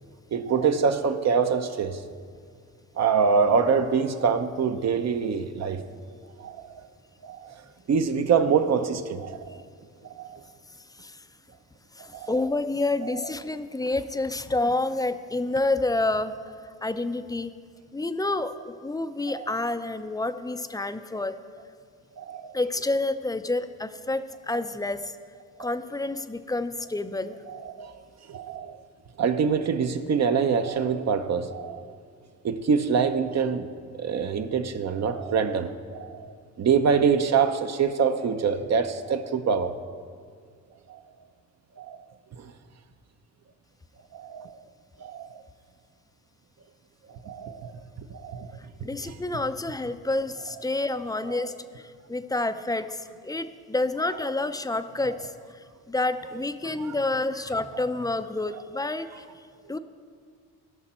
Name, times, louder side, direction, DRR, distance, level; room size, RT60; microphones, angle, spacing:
voice 1, 0.3-2.0 2.9-5.8 6.4-6.9 7.2-7.6 7.9-9.6 10.0-10.4 12.0-12.4 13.0-13.1 19.3-19.5 22.2-22.6 25.6-25.7 27.5-28.0 28.3-28.8 29.2-31.9 32.4-39.7 40.9-41.0 41.8-42.0 42.3-42.5 44.1-44.6 45.0-45.4 47.1-47.7 48.0-48.5 49.0-49.2 51.3-51.4 56.6-57.0 57.7-57.8, right 6 dB, 45° right, 0.8 m, -25 dB
voice 2, 10.9-11.3 11.9-16.5 16.8-17.5 17.9-18.5 18.8-21.3 22.5-25.2 25.6-27.4 48.8-59.2 59.7-59.8, left 2 dB, 10° left, 0.5 m, -29 dB
17.0 x 5.9 x 4.4 m
supercardioid pair, 65°, 36 cm